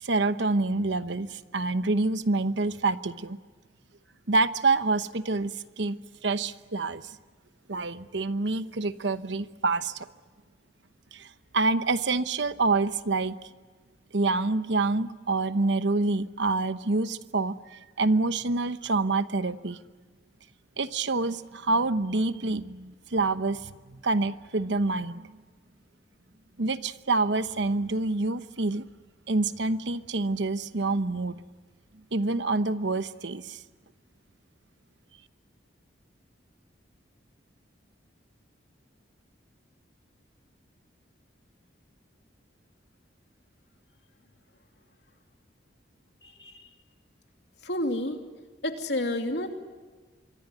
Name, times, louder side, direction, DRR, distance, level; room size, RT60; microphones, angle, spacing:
voice 1, 0.0-3.4 4.3-7.2 7.7-10.1 11.1-13.4 14.1-19.8 20.8-25.3 26.6-28.8 29.3-31.4 32.1-33.6, right 3 dB, 75° right, 12 dB, 1.0 m, -27 dB
voice 2, 46.2-46.7 47.6-48.2 48.6-49.5, left 1 dB, 65° left, 4 dB, 2.8 m, -30 dB
26.0 x 23.5 x 9.5 m, 1.4 s
head